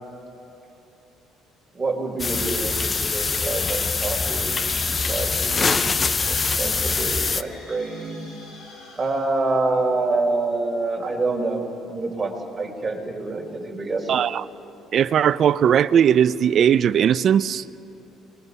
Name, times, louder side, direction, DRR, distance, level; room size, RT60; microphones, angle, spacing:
voice 1, 1.7-8.3 9.0-14.1, right 3 dB, 20° right, 4.3 m, -27 dB
sound 1, 2.2-7.4, left 4 dB, 30° left, 0.6 m, -24 dB
sound 2, 4.2-10.1, left 2 dB, 45° left, 6.0 m, -46 dB
voice 2, 14.1-14.4 14.9-17.6, right 8 dB, 50° right, 0.5 m, -18 dB
29.0 x 22.0 x 5.5 m
cardioid pair, 115°, 0 cm